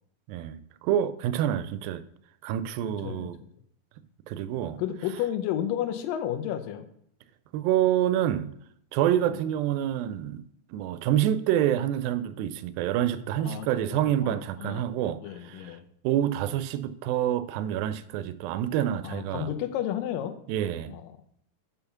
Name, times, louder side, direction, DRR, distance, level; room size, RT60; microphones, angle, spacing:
voice 1, 0.3-2.0 2.4-3.4 4.3-4.8 7.5-8.5 8.9-10.4 10.7-15.7 16.0-19.5 20.5-21.0, right 11 dB, 85° right, 2.3 m, -27 dB
voice 2, 2.9-3.3 4.8-6.9 9.3-9.4 13.4-14.9 15.2-15.8 19.0-20.4 20.9-21.2, left 11 dB, 80° left, 2.3 m, -32 dB
7.1 x 5.6 x 5.7 m
omnidirectional pair, 4.1 m